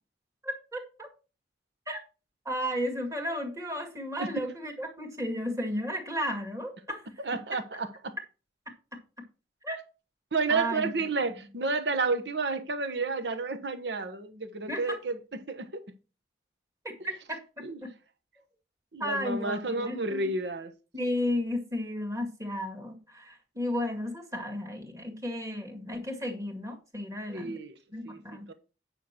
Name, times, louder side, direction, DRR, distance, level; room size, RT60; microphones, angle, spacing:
voice 1, 0.4-1.1 1.9-2.0 2.5-7.0 9.6-9.8 10.5-10.9 14.7-15.0 16.8-17.9 19.0-20.3 20.9-27.6 27.9-28.5, equal, 20° right, 1.9 m, -33 dB
voice 2, 7.2-8.1 10.3-15.9 17.6-17.8 18.9-20.7 27.3-27.8 28.0-28.2 28.5-28.6, right 3 dB, 75° right, 1.1 m, -31 dB
9.2 x 5.9 x 4.4 m
head